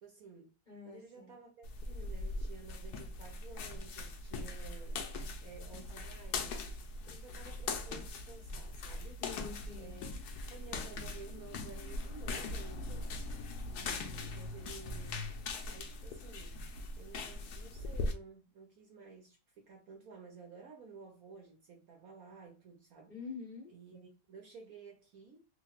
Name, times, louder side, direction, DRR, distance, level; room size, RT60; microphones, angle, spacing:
voice 1, 0.0-0.5 0.8-5.1 5.4-6.7 7.0-9.3 9.8-10.2 10.5-13.1 13.7-15.3 15.7-16.6 17.0-23.1 23.7-25.5, right 5 dB, 60° right, 1.0 m, -53 dB
voice 2, 0.7-1.3 9.2-10.1 23.1-23.7, left 5 dB, 35° left, 0.9 m, -47 dB
sound 1, 1.6-18.1, left 3 dB, 70° left, 1.1 m, -41 dB
3.5 x 3.0 x 2.3 m
omnidirectional pair, 2.0 m